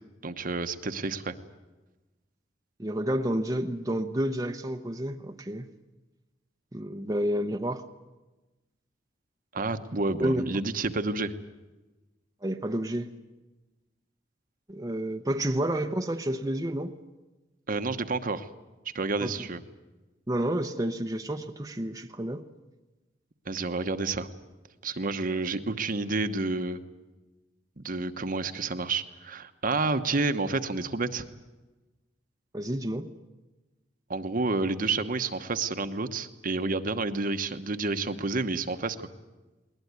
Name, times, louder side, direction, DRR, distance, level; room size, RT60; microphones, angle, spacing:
voice 1, 0.2-1.3 9.5-11.3 17.7-18.5 18.9-19.6 23.5-24.3 24.8-26.8 27.8-31.2 34.1-39.1, right 3 dB, 50° right, 1.1 m, -29 dB
voice 2, 2.8-5.7 6.7-7.8 10.2-10.6 12.4-13.1 14.7-16.9 19.2-19.3 20.3-22.4 32.5-33.1, right 1 dB, 20° right, 0.8 m, -30 dB
20.5 x 19.5 x 9.5 m
head